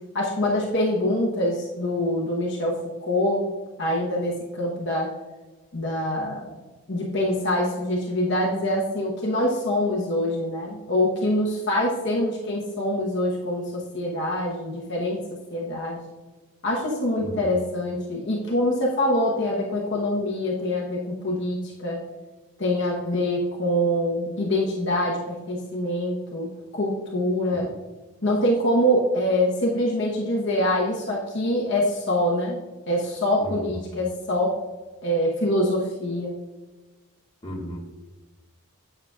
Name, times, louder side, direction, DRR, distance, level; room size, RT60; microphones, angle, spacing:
voice 1, 0.1-3.4 3.8-5.1 5.7-6.6 6.9-16.0 16.6-22.0 22.6-27.7 28.2-34.5 35.0-36.4, left 1 dB, 55° left, -3 dB, 1.1 m, -25 dB
voice 2, 17.2-17.6 33.4-34.1 37.4-37.8, equal, 25° left, -4 dB, 1.6 m, -36 dB
9.3 x 6.7 x 2.4 m, 1.2 s
head